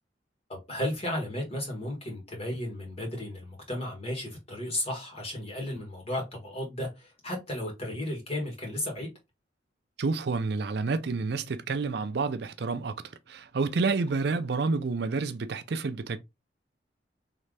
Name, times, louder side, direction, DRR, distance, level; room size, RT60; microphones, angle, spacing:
voice 1, 0.5-9.1, left 1 dB, 35° left, 1.9 m, -34 dB
voice 2, 10.0-16.2, right 4 dB, 65° right, 0.5 m, -29 dB
3.9 x 3.2 x 3.3 m
head